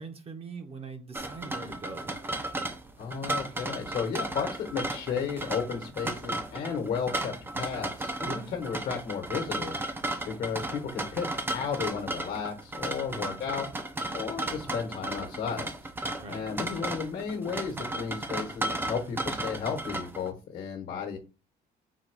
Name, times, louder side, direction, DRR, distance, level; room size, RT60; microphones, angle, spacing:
voice 1, 0.0-2.2 8.2-8.6 13.1-13.4 16.2-16.5, right 4 dB, 35° right, 0.8 m, -42 dB
Japanese Ceramic Rice Pot, 1.1-20.3, right 2 dB, 15° right, 0.5 m, -35 dB
voice 2, 3.0-9.8 10.2-13.7 14.1-15.9 16.3-21.2, left 6 dB, 60° left, 1.1 m, -34 dB
4.1 x 2.3 x 4.5 m
cardioid pair, 110°, 17 cm